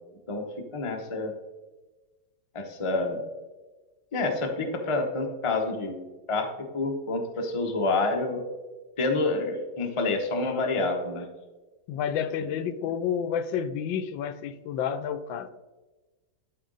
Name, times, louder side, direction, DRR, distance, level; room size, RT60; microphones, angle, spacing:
voice 1, 0.3-1.4 2.5-3.2 4.1-8.5 9.0-11.3 12.4-12.5, left 3 dB, 25° left, 3 dB, 0.6 m, -28 dB
voice 2, 11.9-15.5, left 8 dB, 80° left, 11 dB, 1.3 m, -30 dB
12.0 x 4.7 x 3.9 m, 1.2 s
omnidirectional pair, 2.1 m